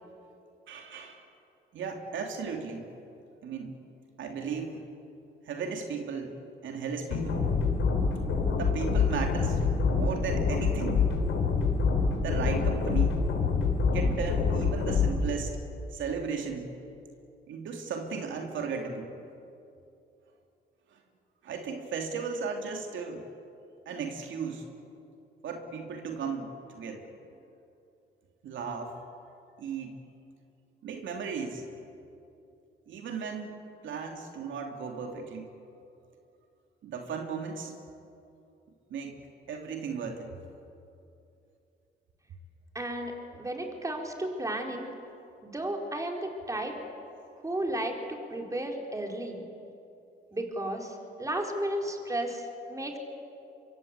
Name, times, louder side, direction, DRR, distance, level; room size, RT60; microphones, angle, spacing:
voice 1, 0.7-1.3 1.7-2.9 3.4-3.7 4.2-4.8 5.4-6.4 6.6-7.4 8.6-9.6 9.9-11.0 12.2-13.2 13.9-15.6 15.9-16.7 17.5-19.1 20.9-21.0 21.4-23.3 23.8-24.7 25.4-27.0 28.4-28.9 29.6-30.0 30.8-31.6 32.9-33.6 33.8-35.5 36.8-37.7 38.9-39.2 39.5-40.4, right 5 dB, 75° right, 3 dB, 3.0 m, -35 dB
sound 1, 7.1-15.1, left 5 dB, 80° left, 5.1 m, -26 dB
voice 2, 42.7-44.9 45.4-46.8 47.4-49.4 50.3-53.0, right 1 dB, 15° right, 2 dB, 4.3 m, -33 dB
26.0 x 24.0 x 8.2 m, 2.7 s
cardioid pair, 90°, 20 cm